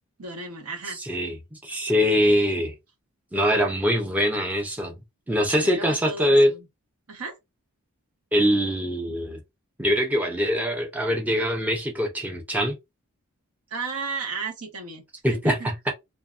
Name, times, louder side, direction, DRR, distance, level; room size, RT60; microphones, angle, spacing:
voice 1, 0.2-1.0 5.5-6.7 7.1-7.3 13.7-15.0 15.4-15.7, right 4 dB, 80° right, 1.0 m, -34 dB
voice 2, 1.0-2.7 3.3-4.9 5.3-6.5 8.3-9.4 9.8-12.8 15.2-15.6 15.9-16.0, equal, 5° right, 0.5 m, -23 dB
2.6 x 2.2 x 2.4 m
head